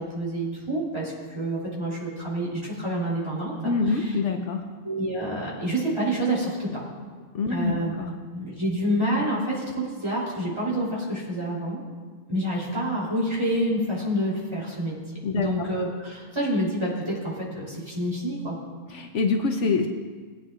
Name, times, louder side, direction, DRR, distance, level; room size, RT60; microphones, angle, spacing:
voice 1, 0.1-4.2 4.8-6.8 7.5-7.9 8.3-11.8 12.3-15.0 15.3-18.6, right 1 dB, 20° right, -6 dB, 3.6 m, -28 dB
voice 2, 3.6-4.6 7.3-8.1 15.2-15.7 18.9-19.9, left 4 dB, 70° left, 4 dB, 1.0 m, -25 dB
20.5 x 9.1 x 2.4 m, 1.5 s
omnidirectional pair, 1.3 m